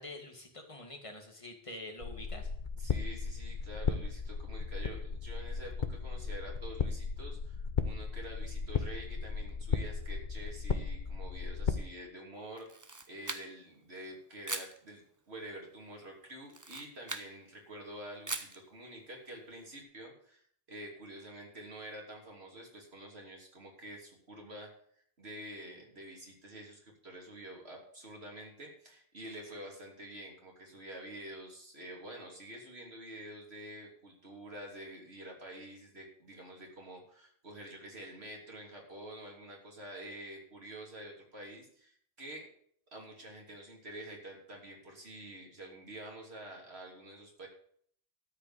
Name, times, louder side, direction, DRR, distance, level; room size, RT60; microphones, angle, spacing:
voice 1, 0.0-2.5, left 1 dB, 30° left, 3 dB, 2.0 m, -46 dB
sound 1, 2.0-11.8, left 5 dB, 50° left, 1.0 m, -35 dB
voice 2, 2.8-12.7 13.1-20.4 20.7-24.7 25.2-42.5 42.9-47.5, right 1 dB, 80° right, -1 dB, 3.3 m, -48 dB
Camera, 12.6-13.8 14.4-14.8 16.5-17.3 18.3-18.6, right 3 dB, 20° right, 0.8 m, -40 dB
13.0 x 5.2 x 7.9 m, 0.62 s
omnidirectional pair, 1.1 m